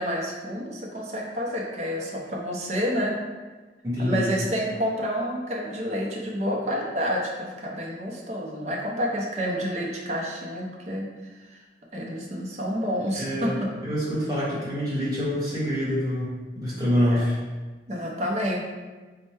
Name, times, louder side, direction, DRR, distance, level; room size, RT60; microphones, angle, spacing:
voice 1, 0.0-3.2 4.0-11.1 11.4-11.6 11.9-13.7 17.1-17.2 17.9-18.6, equal, 35° right, -2 dB, 0.5 m, -29 dB
voice 2, 3.8-4.3 13.1-13.6 13.8-17.4, equal, 20° right, -9 dB, 1.1 m, -26 dB
4.3 x 2.1 x 3.2 m, 1.3 s
head